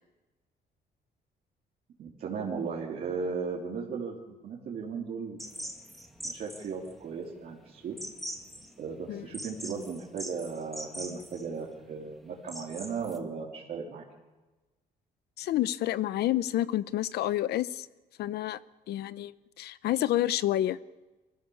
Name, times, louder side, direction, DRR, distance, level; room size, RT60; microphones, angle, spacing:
voice 1, 2.0-5.7 6.2-7.9 8.8-14.0, right 5 dB, 60° right, -4 dB, 3.5 m, -36 dB
sound 1, 5.4-13.2, equal, ahead, 2.2 m, -43 dB
voice 2, 15.4-17.9 18.2-18.6 18.9-20.8, left 13 dB, 85° left, 16 dB, 0.8 m, -29 dB
25.0 x 16.0 x 7.2 m, 1.2 s
cardioid pair, 145°, 16 cm